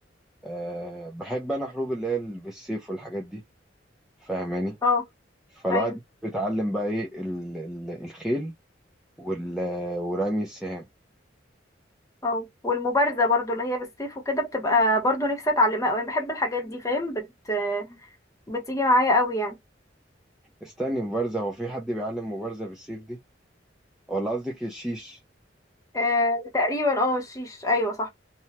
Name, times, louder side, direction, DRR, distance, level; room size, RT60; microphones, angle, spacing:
voice 1, 0.4-3.4 4.2-4.8 5.5-5.9 6.2-8.5 9.2-10.9 20.6-23.2 24.1-25.2, right 1 dB, 5° right, 0.4 m, -30 dB
voice 2, 12.2-17.9 18.5-19.5 25.9-28.1, left 2 dB, 15° left, 0.8 m, -24 dB
2.9 x 2.2 x 2.8 m
head